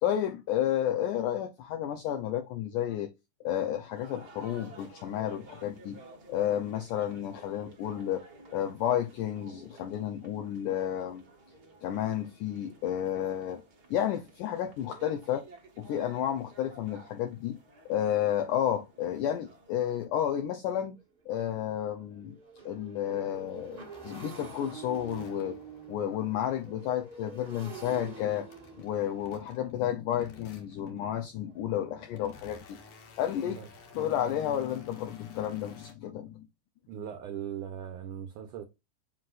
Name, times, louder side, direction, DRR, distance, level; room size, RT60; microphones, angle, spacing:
voice 1, 0.0-3.1 3.4-6.0 6.3-8.2 8.5-11.2 11.8-13.6 13.9-15.5 15.8-17.6 17.9-20.9 21.3-22.4 22.7-25.6 25.9-28.5 28.8-32.8 33.2-33.6 33.9-36.5, left 10 dB, 80° left, 1.9 m, -31 dB
sound 1, 3.9-20.0, right 2 dB, 50° right, 1.2 m, -54 dB
Motorcycle, 20.0-20.1 20.5-20.7 21.0-32.6, right 5 dB, 30° right, 1.0 m, -48 dB
sound 2, 23.3-27.4 27.8-29.8 30.1-31.0 31.6-35.9, left 3 dB, 60° left, 2.7 m, -55 dB
voice 2, 36.9-38.6, right 9 dB, 75° right, 2.0 m, -39 dB
7.6 x 5.8 x 2.5 m
omnidirectional pair, 4.4 m